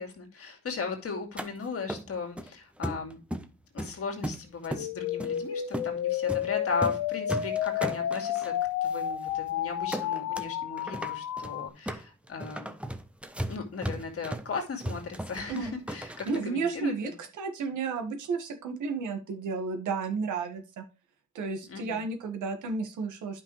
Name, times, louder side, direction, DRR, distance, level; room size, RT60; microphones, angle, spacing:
voice 1, 0.0-3.2 3.7-12.7 13.5-17.1 21.6-22.0, left 4 dB, 50° left, 4 dB, 2.5 m, -37 dB
sound 1, 1.4-1.5 1.9-2.5 2.8-3.5 3.8-4.9 5.2-5.4 5.7-5.9 6.3-6.5 6.7-7.0 7.3-8.5 8.9-9.0 9.3-9.5 9.9-10.5 10.8-16.4, right 1 dB, 5° right, 0.9 m, -36 dB
sound 2, 4.7-11.7, left 10 dB, 80° left, 0.8 m, -31 dB
voice 2, 16.3-17.1 17.4-20.8 21.4-23.4, right 4 dB, 75° right, 7 dB, 1.8 m, -32 dB
10.0 x 5.7 x 3.2 m, 0.31 s
cardioid pair, 90°, 30 cm